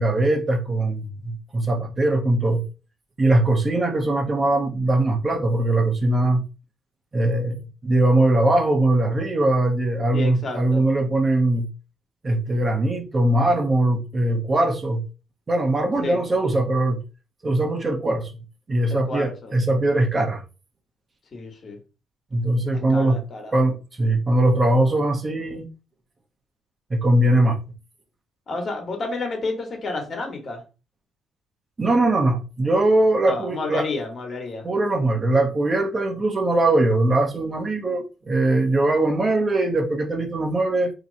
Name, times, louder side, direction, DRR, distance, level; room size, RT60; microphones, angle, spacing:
voice 1, 0.0-2.6 3.2-6.4 7.1-7.6 7.8-11.7 12.2-15.0 15.5-17.0 17.4-18.3 18.7-20.4 22.3-23.2 23.5-25.7 26.9-27.6 31.8-33.9 34.6-40.9, right 2 dB, 30° right, 0.9 m, -21 dB
voice 2, 10.1-10.8 16.0-16.2 18.9-19.5 21.3-21.8 22.7-23.6 28.5-30.6 33.2-34.7, left 3 dB, 45° left, 1.4 m, -31 dB
2.9 x 2.3 x 4.0 m
cardioid pair, 90°, 0 cm